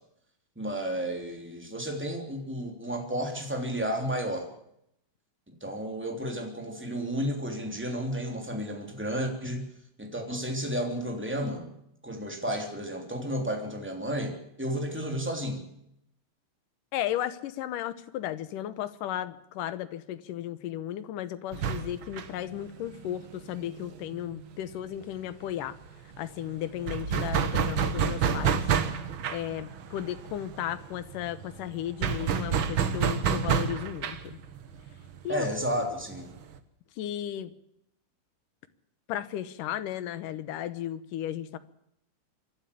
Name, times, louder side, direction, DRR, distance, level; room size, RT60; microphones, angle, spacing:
voice 1, 0.5-4.5 5.5-9.7 10.0-11.7 12.0-15.7 35.3-36.3, equal, 5° right, 3 dB, 2.8 m, -32 dB
voice 2, 16.9-25.8 26.2-28.6 29.3-34.4 35.2-35.5 37.0-37.5 39.1-41.6, left 12 dB, 80° left, 14 dB, 2.6 m, -35 dB
sound 1, 21.5-24.9 25.2-25.3 25.6-36.6, right 7 dB, 55° right, 1.4 m, -30 dB
25.5 x 12.0 x 8.5 m, 0.78 s
omnidirectional pair, 3.8 m